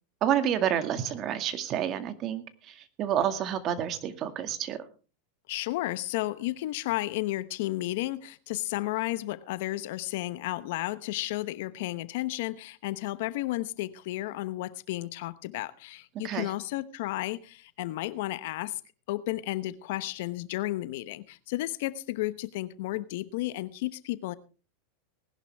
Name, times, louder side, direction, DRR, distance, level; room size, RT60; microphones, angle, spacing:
voice 1, 0.2-4.8 16.2-16.5, right 10 dB, 40° right, 2.1 m, -29 dB
voice 2, 5.5-18.8 19.1-24.3, left 17 dB, 65° left, 1.0 m, -33 dB
19.5 x 11.5 x 3.5 m
hypercardioid pair, 120°, 0 cm